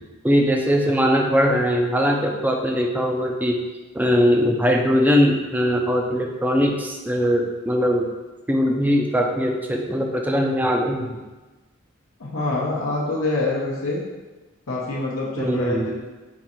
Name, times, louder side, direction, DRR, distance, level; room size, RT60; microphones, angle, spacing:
voice 1, 0.2-3.6 3.9-8.1 8.5-11.2 15.4-15.9, equal, 10° right, 2 dB, 0.4 m, -20 dB
voice 2, 12.2-14.0 14.7-15.9, left 2 dB, 90° left, -4 dB, 0.8 m, -25 dB
4.6 x 2.5 x 4.2 m, 1.2 s
head